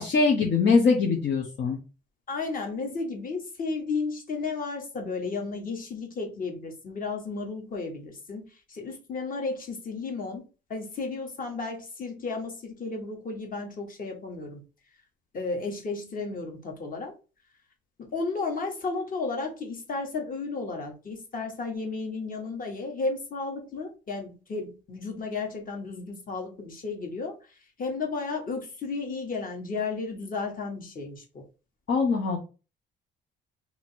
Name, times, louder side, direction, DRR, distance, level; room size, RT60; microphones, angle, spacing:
voice 1, 0.0-1.8 31.9-32.4, left 4 dB, 65° left, 0.9 m, -22 dB
voice 2, 2.3-10.4 10.7-14.6 15.3-17.1 18.0-27.4 27.8-31.4, left 4 dB, 45° left, 1.4 m, -33 dB
2.9 x 2.8 x 4.4 m
cardioid pair, 90°, 20 cm